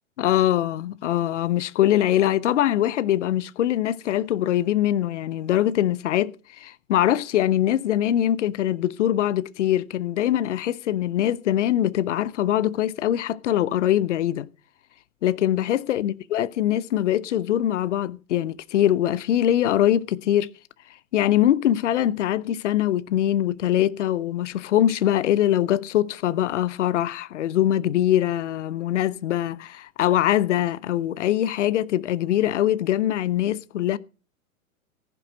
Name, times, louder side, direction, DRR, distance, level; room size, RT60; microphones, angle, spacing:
voice 1, 0.2-14.5 15.2-20.5 21.1-34.0, left 12 dB, 55° left, 0.9 m, -23 dB
15.0 x 11.0 x 5.2 m
figure-of-eight pair, 110°, 42 cm